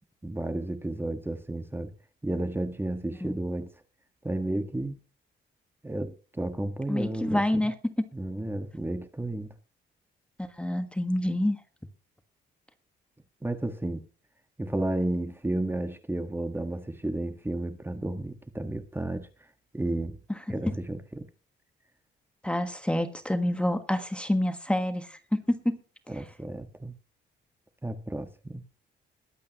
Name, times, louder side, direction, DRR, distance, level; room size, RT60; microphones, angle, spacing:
voice 1, 0.2-1.9 2.2-3.7 4.2-5.0 5.8-7.6 8.1-9.5 13.4-14.0 14.6-19.3 19.7-20.2 20.5-21.3 26.1-26.9 27.8-28.6, right 1 dB, 10° right, 1.5 m, -32 dB
voice 2, 6.9-7.7 10.6-11.6 20.5-20.7 22.4-25.8, left 1 dB, 5° left, 1.5 m, -27 dB
21.5 x 8.6 x 3.0 m
cardioid pair, 90°, 20 cm